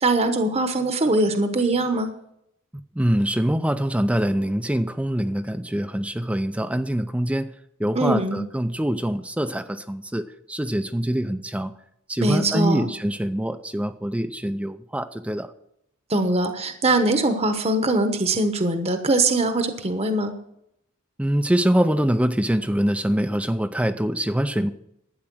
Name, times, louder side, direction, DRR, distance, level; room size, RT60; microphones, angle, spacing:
voice 1, 0.0-2.1 7.9-8.4 12.2-12.9 16.1-20.3, right 2 dB, 30° right, 7 dB, 1.0 m, -22 dB
voice 2, 3.0-7.5 7.8-11.7 12.1-15.5 21.2-24.7, equal, 5° right, 9 dB, 0.5 m, -24 dB
12.0 x 8.9 x 6.2 m, 0.76 s
head